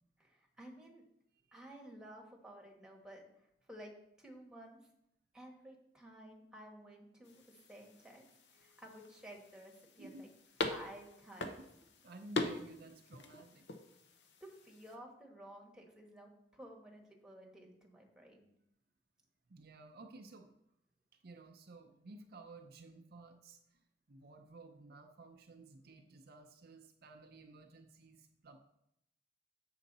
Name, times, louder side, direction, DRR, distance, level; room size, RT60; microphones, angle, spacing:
voice 1, 0.2-1.0 1.5-3.9 4.2-4.8 5.3-8.2 8.5-10.3 10.7-11.5 14.4-18.5, right 1 dB, 5° right, 0 dB, 1.3 m, -54 dB
sound 1, 7.2-15.0, left 2 dB, 70° left, 0.8 m, -44 dB
voice 2, 12.0-13.7 19.5-20.5 21.1-28.6, right 3 dB, 60° right, 5 dB, 0.6 m, -55 dB
7.6 x 5.7 x 4.0 m, 0.76 s
head